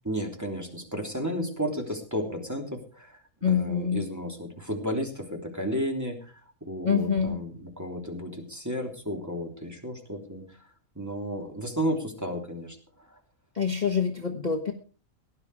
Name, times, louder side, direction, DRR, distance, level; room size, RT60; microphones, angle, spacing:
voice 1, 0.0-3.2 3.5-10.5 10.9-12.8, equal, 10° right, 2 dB, 3.2 m, -33 dB
voice 2, 3.4-4.0 6.8-7.4 13.5-14.7, left 6 dB, 30° left, 2 dB, 1.5 m, -25 dB
18.0 x 10.5 x 4.8 m, 0.38 s
omnidirectional pair, 1.4 m